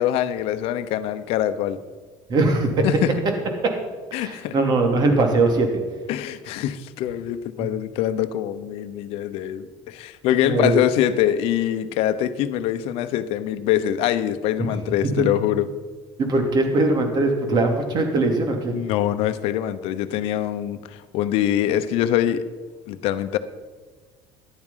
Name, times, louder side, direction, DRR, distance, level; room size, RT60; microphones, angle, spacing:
voice 1, 0.0-1.8 2.8-3.2 4.1-4.6 6.1-15.7 18.7-22.5 22.9-23.4, left 11 dB, 65° left, 11 dB, 1.0 m, -24 dB
voice 2, 2.3-2.8 4.2-5.7 10.4-10.7 15.2-15.3 16.2-18.7, right 2 dB, 40° right, 4 dB, 2.9 m, -20 dB
14.0 x 11.0 x 5.7 m, 1.4 s
cardioid pair, 130°, 10 cm